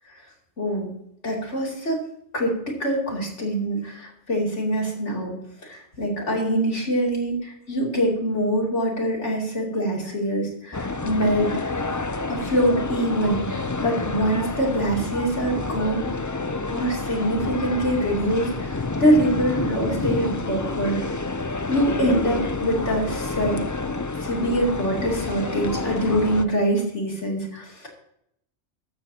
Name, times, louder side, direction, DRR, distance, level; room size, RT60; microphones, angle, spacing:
voice 1, 0.6-0.9 1.2-2.0 2.3-5.3 5.6-11.5 12.3-13.5 13.8-16.1 16.7-21.0 21.7-23.6 24.2-27.9, right 1 dB, 90° left, -1 dB, 3.4 m, -24 dB
sound 1, 10.7-26.4, left 3 dB, 25° left, 0.5 m, -29 dB
13.5 x 13.5 x 2.9 m, 0.75 s
omnidirectional pair, 1.2 m